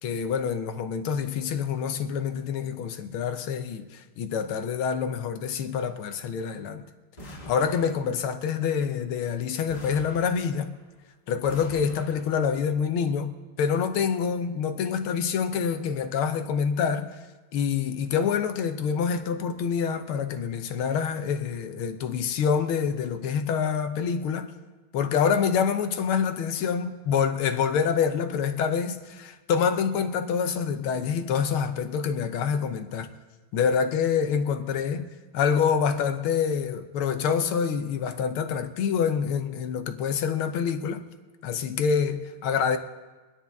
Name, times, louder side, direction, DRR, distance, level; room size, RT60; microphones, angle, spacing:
voice 1, 0.0-6.8 7.2-10.7 11.3-17.2 17.5-24.5 24.9-33.1 33.5-35.1 35.3-41.0 41.4-42.8, left 7 dB, 75° left, 1.7 m, -26 dB
sound 1, 7.2-8.4 9.7-11.0 11.5-12.6, equal, 20° left, 1.7 m, -45 dB
24.0 x 10.0 x 3.5 m
omnidirectional pair, 2.4 m